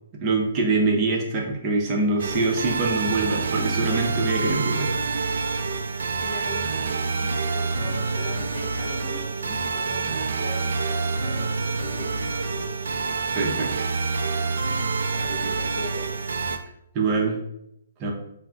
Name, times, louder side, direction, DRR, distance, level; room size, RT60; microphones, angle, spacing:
voice 1, 0.2-4.9 13.3-13.9 16.9-17.4 18.0-18.1, right 3 dB, 30° right, -1 dB, 0.6 m, -24 dB
sound 1, 2.2-16.6, right 4 dB, 75° right, 0.3 m, -27 dB
voice 2, 6.2-12.4 15.1-16.0, left 2 dB, 55° left, 0 dB, 0.8 m, -40 dB
2.3 x 2.0 x 3.3 m, 0.79 s
hypercardioid pair, 145°, 0 cm